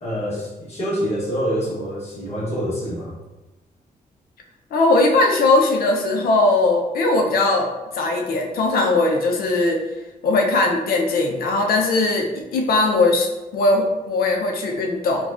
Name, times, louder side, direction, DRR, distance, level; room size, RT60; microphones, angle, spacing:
voice 1, 0.0-3.1, equal, 45° left, -6 dB, 1.1 m, -26 dB
voice 2, 4.7-7.7 7.9-9.8 10.2-15.3, left 2 dB, 80° left, 2 dB, 0.6 m, -19 dB
4.8 x 2.3 x 2.4 m, 1.1 s
wide cardioid pair, 175°, 15 cm